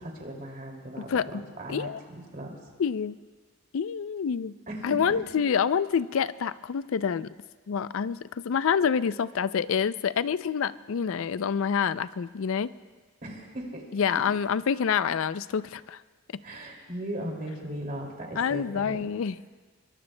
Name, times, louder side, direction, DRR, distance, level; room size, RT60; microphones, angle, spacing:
voice 1, 0.0-2.5 4.7-5.1 13.2-13.8 16.4-19.1, right 1 dB, 40° right, 0 dB, 2.5 m, -38 dB
voice 2, 1.0-2.0 2.8-3.2 3.7-4.6 4.8-7.3 7.7-12.7 13.9-16.0 16.3-16.4 18.4-19.5, left 7 dB, 65° left, 16 dB, 0.4 m, -27 dB
23.0 x 22.5 x 2.2 m, 1.4 s
head